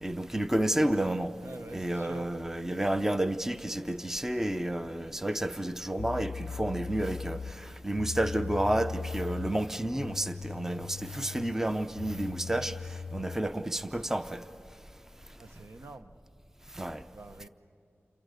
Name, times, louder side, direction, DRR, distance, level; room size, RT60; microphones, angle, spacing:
voice 1, 0.0-1.3 1.7-14.4 16.8-17.0, right 1 dB, 10° right, 0.7 m, -31 dB
voice 2, 1.4-2.3 15.4-16.2 16.8-17.5, right 2 dB, 60° right, 1.0 m, -46 dB
sound 1, 6.0-13.5, left 5 dB, 55° left, 0.5 m, -39 dB
28.5 x 24.0 x 6.6 m
cardioid pair, 60°, 5 cm